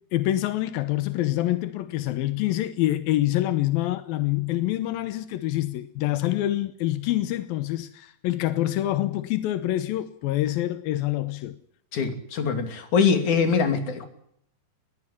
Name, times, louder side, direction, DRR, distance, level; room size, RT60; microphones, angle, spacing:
voice 1, 0.1-11.5, left 14 dB, 90° left, 2.8 m, -26 dB
voice 2, 11.9-14.1, left 5 dB, 60° left, 4.1 m, -23 dB
21.0 x 16.0 x 9.8 m
omnidirectional pair, 4.0 m